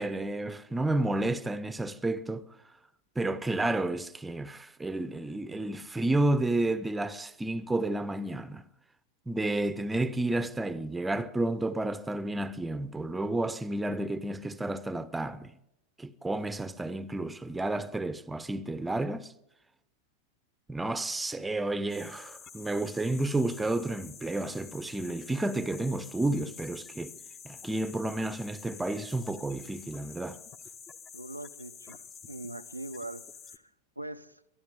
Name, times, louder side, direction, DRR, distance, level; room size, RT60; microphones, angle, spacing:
voice 1, 0.0-2.5 3.2-8.6 9.3-15.5 16.0-19.3 20.7-27.1 27.4-30.4, right 2 dB, 10° right, 0.7 m, -31 dB
sound 1, 21.9-33.6, left 6 dB, 25° left, 0.9 m, -48 dB
voice 2, 31.1-33.6 34.0-34.4, right 1 dB, 90° right, 0.6 m, -42 dB
23.5 x 12.5 x 3.7 m
figure-of-eight pair, 90°, 0 cm